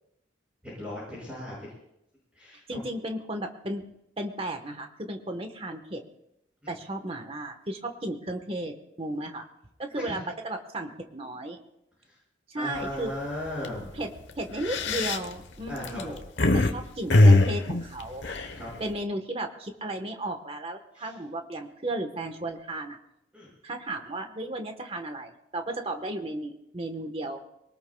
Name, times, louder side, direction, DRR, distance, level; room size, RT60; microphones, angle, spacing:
voice 1, 0.8-1.6 2.4-2.8 9.9-10.2 12.5-14.0 15.7-16.1 18.6-18.9 20.9-21.1 23.3-23.5, left 1 dB, 5° right, -7 dB, 6.0 m, -36 dB
voice 2, 2.7-3.8 4.2-6.0 6.7-9.5 9.8-11.6 12.5-13.1 13.9-16.1 16.5-18.3 18.8-23.0 23.6-27.4, right 1 dB, 30° right, 5 dB, 1.3 m, -34 dB
sound 1, 12.8-13.1 13.5-13.7 14.4-16.7 17.1-18.9, left 2 dB, 75° left, 1.1 m, -21 dB
24.0 x 18.5 x 2.3 m, 0.81 s
head